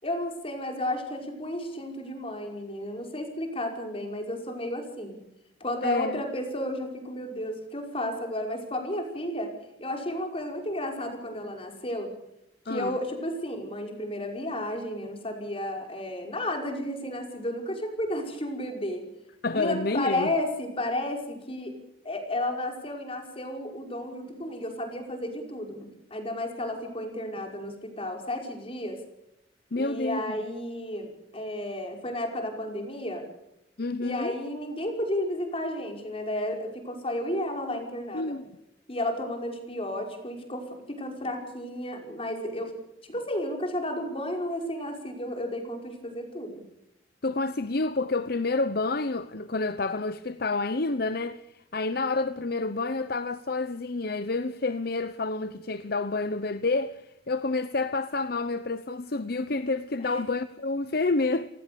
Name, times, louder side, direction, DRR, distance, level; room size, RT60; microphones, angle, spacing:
voice 1, 0.0-5.2 5.6-12.1 12.7-19.0 19.5-21.7 22.0-29.0 29.7-33.3 34.0-38.3 38.9-40.6 41.0-42.7 43.1-46.7 60.0-60.2, left 1 dB, 30° left, 5.4 m, -32 dB
voice 2, 5.8-6.2 12.7-13.0 19.4-20.3 29.7-30.2 33.8-34.3 38.1-38.5 47.2-61.5, left 3 dB, 55° left, 0.9 m, -29 dB
30.0 x 19.0 x 7.0 m
head